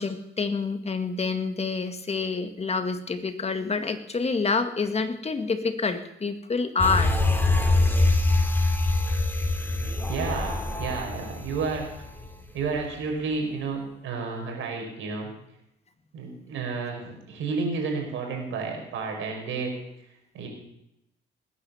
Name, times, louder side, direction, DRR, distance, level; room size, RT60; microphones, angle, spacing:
voice 1, 0.0-7.1, left 4 dB, 30° left, 8 dB, 2.0 m, -27 dB
sound 1, 6.8-12.4 12.8-12.9, left 2 dB, 10° left, 3.0 m, -24 dB
voice 2, 10.1-12.1 12.5-15.3 16.1-19.7 20.3-20.5, right 4 dB, 80° right, 2 dB, 5.6 m, -31 dB
20.0 x 9.9 x 7.2 m, 0.81 s
cardioid pair, 90°, 20 cm